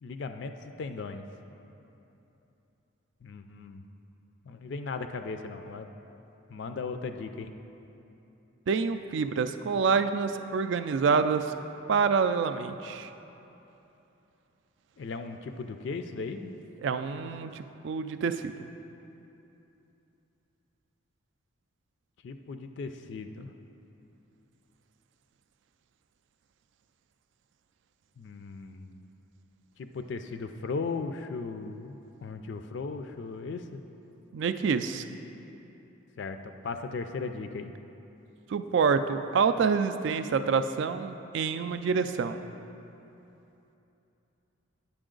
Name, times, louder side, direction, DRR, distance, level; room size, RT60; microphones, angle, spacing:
voice 1, 0.0-0.5 0.8-1.2 3.2-3.8 4.5-5.9 6.5-7.5 15.0-16.5 22.2-23.5 28.2-28.9 29.8-33.8 36.2-37.7, left 4 dB, 60° left, 7 dB, 0.3 m, -37 dB
voice 2, 8.7-11.5 11.9-13.1 16.8-18.5 34.3-35.0 38.5-42.4, right 5 dB, 60° right, 10 dB, 0.3 m, -27 dB
8.9 x 6.9 x 3.8 m, 3.0 s
head